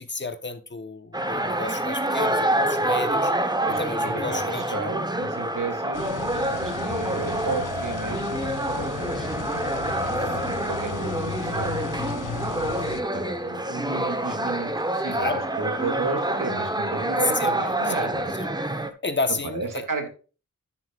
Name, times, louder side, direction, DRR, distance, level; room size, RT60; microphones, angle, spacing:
voice 1, 0.0-3.3 3.6-4.7 10.1-10.5 15.1-15.5 17.3-18.1 18.4-18.5 19.0-19.8, left 3 dB, 35° left, 1.0 m, -32 dB
sound 1, 1.1-18.9, right 1 dB, 15° right, 1.0 m, -27 dB
voice 2, 3.6-4.4 4.7-9.7 10.5-12.5 12.9-18.4 19.5-20.1, right 3 dB, 75° right, 2.3 m, -34 dB
sound 2, 5.9-13.0, left 7 dB, 70° left, 0.7 m, -35 dB
sound 3, 8.8-13.6, left 3 dB, 90° left, 3.9 m, -48 dB
11.5 x 8.0 x 2.4 m
wide cardioid pair, 75°, 32 cm